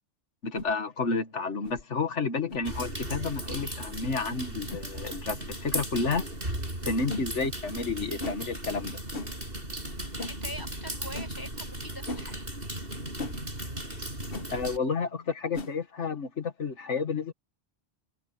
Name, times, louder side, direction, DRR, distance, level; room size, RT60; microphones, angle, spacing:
voice 1, 0.4-6.3 6.8-9.0 14.5-17.3, left 4 dB, 75° left, 2.1 m, -31 dB
sound 1, 0.5-0.7 1.6-1.8 2.5-2.7 3.6-3.7 4.7-4.9 5.7-5.9 7.1-7.3 8.2-8.4 9.1-9.3 10.2-10.4 11.1-11.3 12.1-12.3 13.2-13.4 14.3-14.5 15.5-15.7, left 2 dB, 55° left, 1.5 m, -37 dB
sound 2, 2.6-14.8, right 1 dB, 50° right, 8.2 m, -36 dB
voice 2, 10.2-12.5, equal, 20° left, 5.0 m, -43 dB
omnidirectional pair, 1.2 m